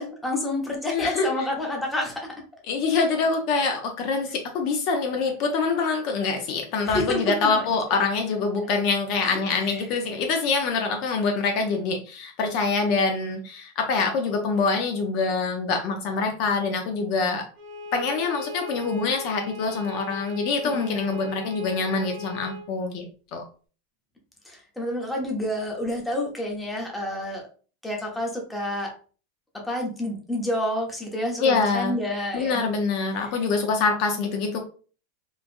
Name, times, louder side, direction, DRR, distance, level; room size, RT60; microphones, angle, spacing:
voice 1, 0.0-2.3 6.8-7.2 7.5-7.7 9.2-9.4 9.8-9.9 20.6-21.2 24.5-27.4 27.8-28.9 29.5-32.7 33.2-33.3, left 1 dB, 5° left, -1 dB, 0.7 m, -29 dB
voice 2, 0.9-1.5 2.7-17.4 17.9-23.1 23.3-23.4 31.4-32.0 32.3-34.6, left 4 dB, 50° left, 3 dB, 0.6 m, -25 dB
Bowed string instrument, 17.5-22.7, left 2 dB, 45° right, 1.1 m, -38 dB
3.1 x 2.2 x 2.5 m, 0.38 s
supercardioid pair, 145°, 0 cm